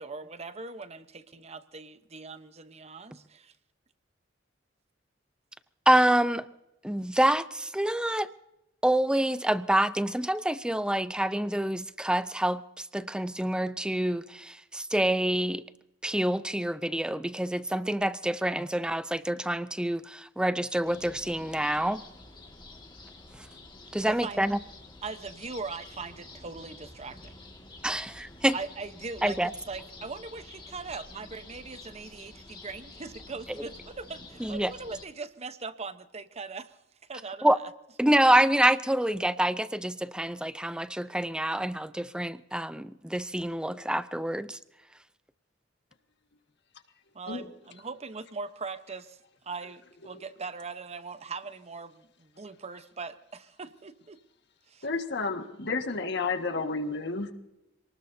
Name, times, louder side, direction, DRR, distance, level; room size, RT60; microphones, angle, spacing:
voice 1, 0.0-3.5 24.0-24.4 25.0-27.4 28.5-29.4 29.7-36.8 37.1-37.6 47.1-49.2 49.4-54.2 54.7-54.9, right 4 dB, 35° right, 11 dB, 0.9 m, -40 dB
voice 2, 5.9-6.5 6.8-8.3 8.8-15.6 16.0-22.0 23.3-23.5 23.9-24.6 27.8-28.6 29.2-29.5 34.4-34.7 37.4-37.6 38.0-44.6, right 1 dB, 5° right, 14 dB, 0.5 m, -27 dB
sound 1, 20.8-35.0, left 2 dB, 25° left, 2.0 m, -49 dB
voice 3, 54.8-57.3, left 3 dB, 65° left, 6 dB, 1.7 m, -31 dB
27.5 x 19.5 x 2.7 m, 0.92 s
head